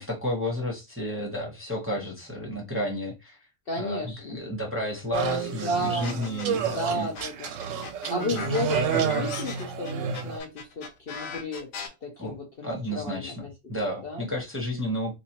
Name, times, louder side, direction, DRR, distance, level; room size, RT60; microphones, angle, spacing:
voice 1, 0.0-3.4 3.8-7.1 8.3-8.5 9.2-9.3 12.2-12.3 12.6-15.2, equal, 10° right, 0.9 m, -32 dB
voice 2, 3.7-4.4 5.2-6.2 6.5-7.5 8.1-11.7 12.0-13.5 14.0-14.3, left 1 dB, 50° left, 0.9 m, -33 dB
sound 1, 5.1-10.4, right 7 dB, 70° right, 0.9 m, -30 dB
sound 2, 6.0-6.7 7.1-11.9, left 5 dB, 80° left, 1.2 m, -38 dB
4.1 x 2.6 x 2.9 m
omnidirectional pair, 1.4 m